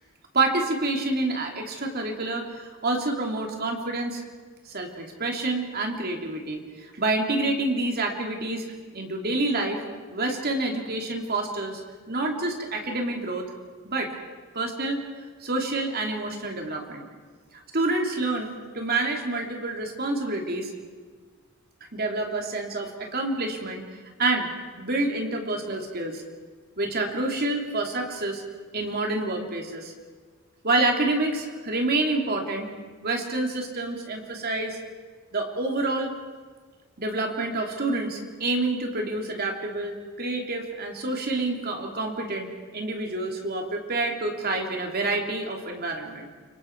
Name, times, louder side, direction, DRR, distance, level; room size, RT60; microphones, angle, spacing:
voice 1, 0.3-4.2 4.7-8.6 8.9-9.8 10.1-11.8 12.1-13.5 13.8-14.1 14.5-15.0 15.4-17.1 17.7-20.7 21.9-23.8 24.2-24.5 24.8-26.2 26.8-28.4 28.7-29.9 30.6-32.7 33.0-34.8 35.3-36.1 37.0-46.3, right 2 dB, 45° right, 2 dB, 3.2 m, -28 dB
29.5 x 25.0 x 4.7 m, 1.5 s
head